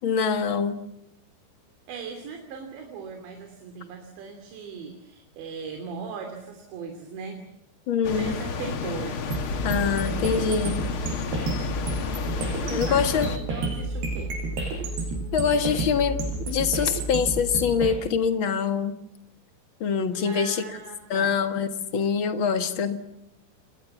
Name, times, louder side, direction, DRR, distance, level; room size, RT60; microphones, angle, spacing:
voice 1, 0.0-0.8 7.9-8.3 9.6-10.8 12.7-13.3 15.3-16.2 16.5-19.0 19.8-20.6 21.1-23.0, left 6 dB, 60° left, 8 dB, 1.3 m, -24 dB
voice 2, 1.9-7.4 8.1-9.2 12.5-14.3 20.1-21.4, right 5 dB, 90° right, 4 dB, 5.3 m, -38 dB
sound 1, 8.0-13.4, left 5 dB, 80° left, 1.2 m, -31 dB
sound 2, 9.3-17.9, right 2 dB, 70° right, 9.0 m, -30 dB
29.5 x 22.0 x 7.2 m, 0.80 s
omnidirectional pair, 5.0 m